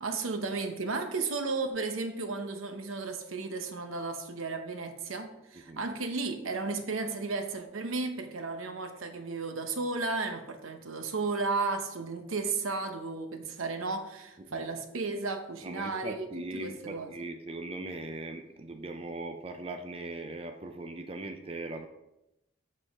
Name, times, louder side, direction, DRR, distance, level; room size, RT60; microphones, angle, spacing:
voice 1, 0.0-16.3 16.5-17.1, right 3 dB, 85° right, 7 dB, 0.9 m, -34 dB
voice 2, 15.6-21.9, right 2 dB, 30° right, 6 dB, 0.5 m, -39 dB
7.5 x 6.5 x 3.6 m, 0.90 s
head